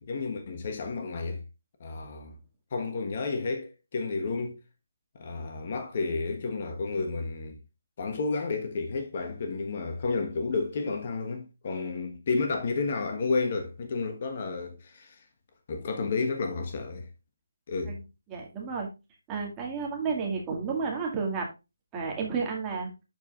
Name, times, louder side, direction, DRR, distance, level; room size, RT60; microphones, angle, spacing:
voice 1, 0.0-1.4 1.8-2.3 2.7-4.6 5.1-7.6 8.0-15.2 15.7-17.1 17.7-18.0, left 4 dB, 40° left, 1.3 m, -31 dB
voice 2, 18.3-18.9 19.3-21.5 21.9-22.9, right 5 dB, 15° right, 2.0 m, -31 dB
12.0 x 4.8 x 2.5 m
figure-of-eight pair, 155°, 0 cm